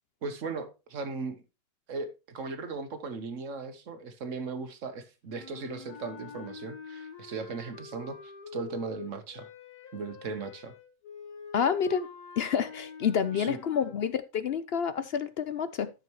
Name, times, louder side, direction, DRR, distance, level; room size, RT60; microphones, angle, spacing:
voice 1, 0.2-1.4 1.9-9.5 9.9-10.7 13.3-13.6, right 4 dB, 55° right, 1.5 m, -37 dB
sound 1, 5.3-14.0, left 5 dB, 80° left, 1.8 m, -46 dB
voice 2, 11.5-12.1 12.4-15.9, left 7 dB, 60° left, 0.6 m, -28 dB
12.5 x 6.7 x 3.0 m
omnidirectional pair, 1.6 m